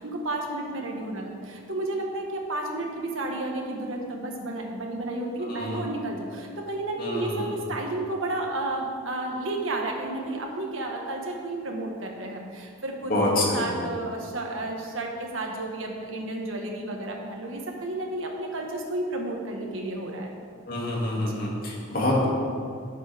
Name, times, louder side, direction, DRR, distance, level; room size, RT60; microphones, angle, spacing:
voice 1, 0.0-20.3, right 2 dB, 80° right, 1 dB, 1.6 m, -32 dB
voice 2, 5.4-5.8 7.0-7.6 13.1-13.7 20.7-22.3, left 1 dB, 45° left, -4 dB, 2.4 m, -26 dB
17.0 x 7.4 x 3.6 m, 2.3 s
head